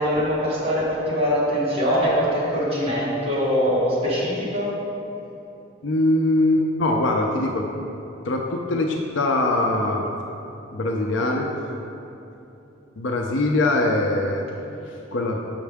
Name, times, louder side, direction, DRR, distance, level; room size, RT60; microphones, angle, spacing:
voice 1, 0.0-4.7, equal, 30° right, -7 dB, 1.5 m, -22 dB
voice 2, 5.8-7.6 8.3-10.0 10.7-11.5 13.0-14.5 15.1-15.4, left 2 dB, 70° left, 1 dB, 0.5 m, -22 dB
7.3 x 5.6 x 3.5 m, 3.0 s
head